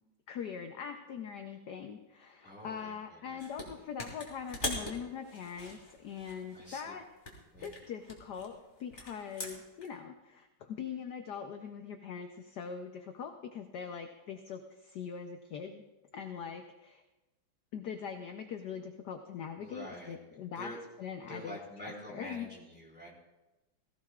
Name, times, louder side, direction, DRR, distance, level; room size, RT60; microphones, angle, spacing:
voice 1, 0.3-7.0 7.6-15.8 16.1-17.0 17.7-20.7 21.0-22.5, left 7 dB, 60° left, 5 dB, 1.2 m, -42 dB
voice 2, 2.4-3.4 6.5-6.9 7.5-7.7 19.6-20.3 20.6-20.8 21.2-23.1, equal, 5° right, -5 dB, 4.5 m, -47 dB
sound 1, 3.4-3.7 4.0-6.8 7.2-9.9, left 1 dB, 20° left, 2.8 m, -42 dB
20.5 x 16.0 x 2.4 m, 1.0 s
omnidirectional pair, 2.4 m